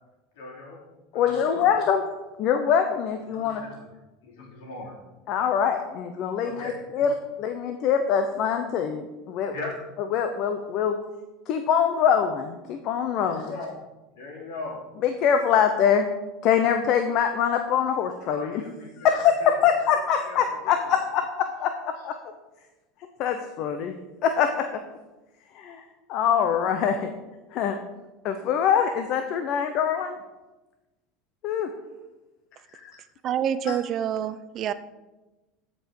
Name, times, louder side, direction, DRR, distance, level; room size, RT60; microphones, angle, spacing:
voice 1, 0.3-0.8 1.1-1.5 3.3-3.7 4.2-4.9 6.4-7.0 9.5-9.8 13.2-13.7 14.1-14.8 18.3-19.5 20.3-20.9, left 3 dB, 75° left, -1 dB, 3.3 m, -39 dB
voice 2, 1.1-2.0 2.4-3.6 5.3-7.1 7.4-9.5 10.1-11.0 11.5-13.5 15.0-16.1 16.4-18.6 19.0-22.1 23.2-23.9 24.2-24.8 25.5-27.1 27.5-27.8 28.2-30.2 31.4-31.7 32.7-33.0 33.7-33.8, left 8 dB, 55° left, 7 dB, 0.8 m, -24 dB
voice 3, 33.2-34.7, right 9 dB, 45° right, 13 dB, 0.5 m, -27 dB
13.0 x 5.4 x 4.8 m, 1.1 s
hypercardioid pair, 85°, 0 cm